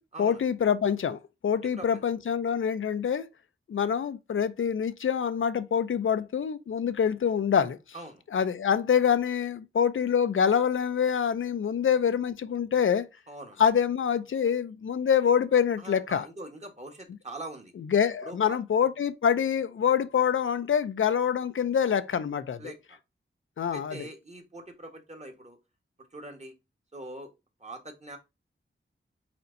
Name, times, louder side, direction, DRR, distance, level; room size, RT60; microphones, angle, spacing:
voice 1, 0.2-3.3 3.7-7.8 8.3-13.1 13.6-16.3 17.9-22.6 23.6-24.1, left 7 dB, 75° left, 0.5 m, -25 dB
voice 2, 1.6-2.0 7.9-8.2 13.3-13.6 15.8-17.7 18.2-18.6 22.6-23.0 23.7-25.6 26.1-26.5 26.9-27.3 27.6-28.2, right 2 dB, 35° right, 1.3 m, -43 dB
4.3 x 4.1 x 2.5 m
wide cardioid pair, 95°, 21 cm